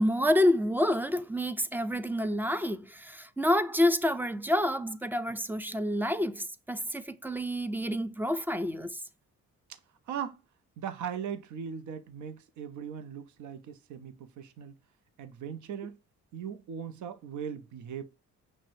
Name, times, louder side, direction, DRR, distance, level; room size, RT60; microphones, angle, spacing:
voice 1, 0.0-9.0, left 1 dB, 5° right, 0.3 m, -28 dB
voice 2, 10.1-10.4 10.8-14.7 15.2-16.0 16.3-18.0, right 8 dB, 70° right, 0.6 m, -39 dB
6.0 x 2.1 x 2.6 m
cardioid pair, 90°, 30 cm